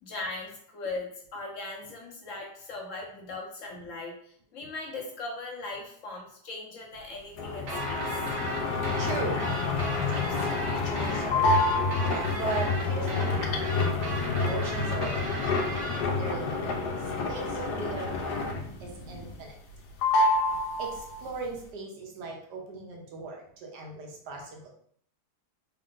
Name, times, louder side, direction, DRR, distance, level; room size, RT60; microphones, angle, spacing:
voice 1, 0.0-8.3, left 2 dB, 60° left, 0 dB, 0.9 m, -39 dB
sound 1, 7.4-18.9 19.2-19.8 20.0-21.3, left 3 dB, 85° left, 1.2 m, -28 dB
sound 2, 7.7-16.0, right 3 dB, 60° right, 1.0 m, -38 dB
voice 2, 8.6-9.4 10.1-11.7 12.1-13.8 14.1-15.5 16.2-16.7 17.3-19.6 20.8-24.7, right 3 dB, 80° right, 0 dB, 1.4 m, -38 dB
sound 3, 11.4-19.4, equal, 25° left, 0.5 m, -42 dB
3.6 x 2.5 x 3.6 m, 0.62 s
omnidirectional pair, 1.8 m